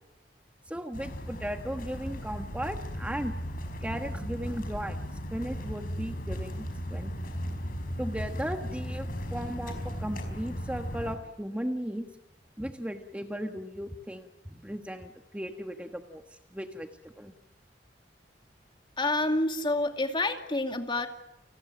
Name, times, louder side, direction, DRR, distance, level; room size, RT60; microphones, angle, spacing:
voice 1, 0.7-5.0 5.3-7.1 8.0-12.1 12.6-16.2 16.5-17.3, equal, 5° right, 6 dB, 1.4 m, -36 dB
sound 1, 0.9-11.2, equal, 55° left, 5.0 m, -36 dB
voice 2, 19.0-21.1, left 2 dB, 30° left, 6 dB, 2.5 m, -28 dB
30.0 x 19.5 x 9.1 m, 0.90 s
head